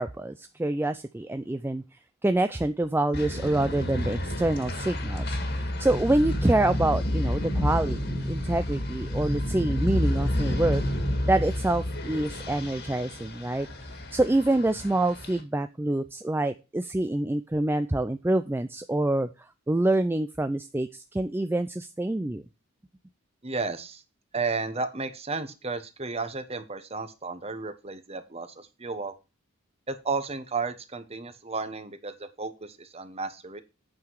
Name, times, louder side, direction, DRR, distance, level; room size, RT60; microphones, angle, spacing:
voice 1, 0.0-1.8 2.2-10.8 11.3-13.7 14.1-19.3 19.7-22.4, right 2 dB, 10° right, 10 dB, 0.4 m, -26 dB
sound 1, 3.1-15.4, left 1 dB, 50° left, 1.9 m, -30 dB
voice 2, 23.4-24.0 24.3-29.1 29.9-33.6, right 4 dB, 30° right, 10 dB, 1.1 m, -33 dB
8.8 x 5.8 x 4.6 m, 0.28 s
head